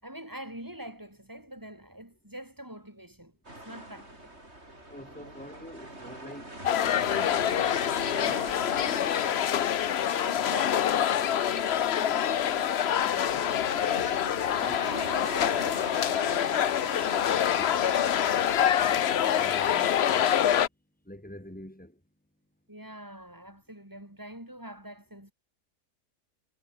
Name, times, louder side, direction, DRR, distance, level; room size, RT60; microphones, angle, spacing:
voice 1, 0.0-3.4 3.6-4.4 10.0-13.5 14.6-16.7 22.7-25.3, right 1 dB, 10° right, 6.5 m, -44 dB
sound 1, 3.4-20.7, right 1 dB, 40° right, 7.4 m, -43 dB
voice 2, 4.9-7.6 8.1-9.5 14.3-14.9 17.5-20.6 21.1-22.0, left 1 dB, 5° left, 5.4 m, -46 dB
sound 2, 6.6-20.7, left 10 dB, 55° left, 0.8 m, -26 dB
omnidirectional pair, 1.7 m